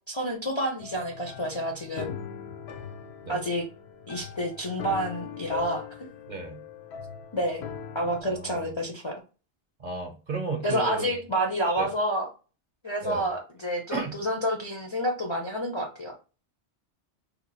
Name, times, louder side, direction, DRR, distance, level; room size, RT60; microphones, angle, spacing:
voice 1, 0.1-2.1 3.3-3.6 4.1-5.8 7.3-7.6 7.9-9.2 10.6-12.3 12.8-16.1, equal, 35° left, 0 dB, 0.5 m, -29 dB
sound 1, 0.8-8.2, left 8 dB, 70° left, 0.8 m, -40 dB
voice 2, 6.3-6.6 8.2-8.7 9.8-11.2 11.8-11.9 13.0-13.2 13.9-14.1, right 3 dB, 45° right, 3 dB, 0.8 m, -33 dB
2.8 x 2.4 x 4.0 m, 0.33 s
omnidirectional pair, 1.2 m